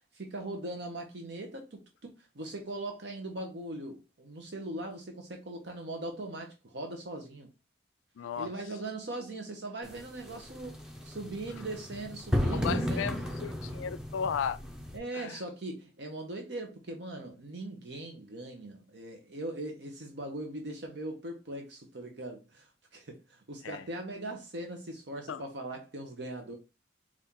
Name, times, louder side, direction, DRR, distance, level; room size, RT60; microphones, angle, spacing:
voice 1, 0.0-7.5 8.4-10.8 11.0-13.0 14.9-26.6, right 2 dB, 60° right, 0.8 m, -40 dB
voice 2, 8.2-8.5 12.5-14.6 15.1-15.4 23.6-23.8 25.3-25.4, left 7 dB, 85° left, 0.3 m, -35 dB
sound 1, 9.8-15.0, left 1 dB, 5° right, 0.7 m, -34 dB
4.2 x 2.4 x 3.6 m
head